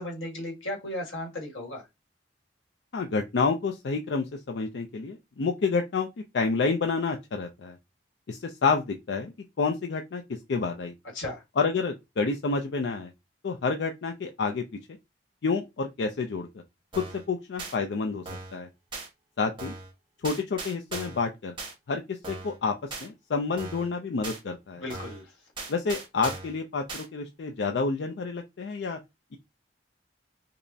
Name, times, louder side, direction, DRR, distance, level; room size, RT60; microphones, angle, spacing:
voice 1, 0.0-1.8 11.1-11.4 24.7-25.3, left 1 dB, 90° left, 1.6 m, -35 dB
voice 2, 2.9-6.1 6.3-7.8 8.3-9.3 9.6-10.9 11.6-13.1 13.4-14.6 15.4-16.5 17.0-18.2 18.5-18.7 19.4-19.7 20.2-21.5 21.9-24.8 25.7-29.0, left 4 dB, 65° left, 0.4 m, -29 dB
sound 1, 16.9-17.2 17.6-17.7 18.3-18.6 18.9-19.1 19.6-19.9 20.2-21.2 21.6-21.7 22.2-22.6 22.9-23.1 23.6-23.9 24.2-24.4 24.9-25.2 25.6-26.5 26.9-27.1, right 3 dB, 25° right, 1.4 m, -38 dB
5.2 x 2.0 x 2.6 m
head